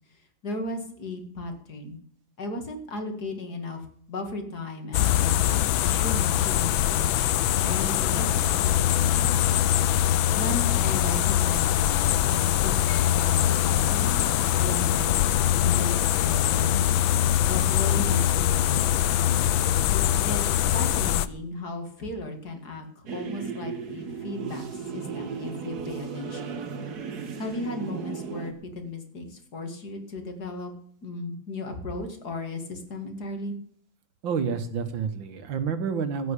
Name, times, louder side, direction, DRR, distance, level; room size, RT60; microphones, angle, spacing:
voice 1, 0.4-2.0 2.4-3.8 4.1-7.1 7.5-9.6 10.4-12.9 13.1-14.3 14.6-16.8 17.4-19.3 20.2-26.6 27.4-30.7 31.0-33.5, left 2 dB, 55° left, 5 dB, 2.7 m, -36 dB
sound 1, 4.9-21.3, left 11 dB, 85° left, 1.5 m, -23 dB
sound 2, 23.1-28.5, right 5 dB, 55° right, 1.8 m, -35 dB
voice 2, 34.2-36.3, right 6 dB, 75° right, 10 dB, 2.0 m, -29 dB
16.0 x 6.1 x 8.5 m, 0.63 s
omnidirectional pair, 2.1 m